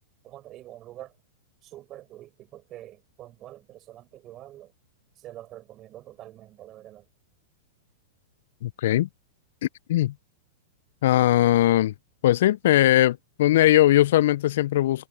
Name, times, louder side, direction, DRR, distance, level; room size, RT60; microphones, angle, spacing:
voice 1, 0.2-1.2 1.6-4.7 5.1-7.1, right 14 dB, 35° right, 4.9 m, -45 dB
voice 2, 8.6-9.1 9.6-10.1 11.0-11.9 12.2-15.1, left 14 dB, 65° left, 0.8 m, -20 dB
hypercardioid pair, 105°, 0 cm